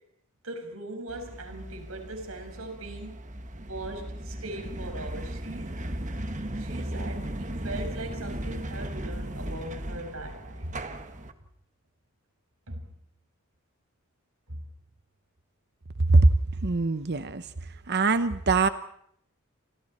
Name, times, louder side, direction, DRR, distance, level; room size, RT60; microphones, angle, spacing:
voice 1, 0.4-3.2 3.6-5.7 6.6-10.8 12.7-12.9 14.5-14.6, right 1 dB, 85° right, 5 dB, 5.9 m, -40 dB
sound 1, 1.1-11.3, right 1 dB, 35° right, 1.7 m, -36 dB
voice 2, 16.6-17.5 17.9-18.7, right 3 dB, 50° right, 12 dB, 0.9 m, -21 dB
29.5 x 26.5 x 4.4 m, 0.69 s
head